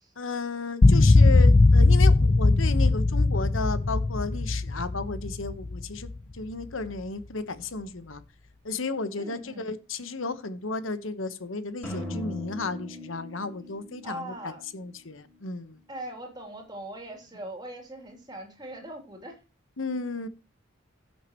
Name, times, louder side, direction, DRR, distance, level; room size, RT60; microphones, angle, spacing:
voice 1, 0.2-8.2 8.6-15.8 19.8-20.3, left 3 dB, 80° left, 1.1 m, -34 dB
sound 1, 0.8-6.2, left 2 dB, 30° left, 0.4 m, -19 dB
voice 2, 9.2-9.7 14.0-14.6 15.9-19.4, right 1 dB, 20° right, 3.0 m, -40 dB
sound 2, 11.8-15.6, left 1 dB, 10° left, 4.8 m, -40 dB
16.0 x 6.6 x 3.0 m
head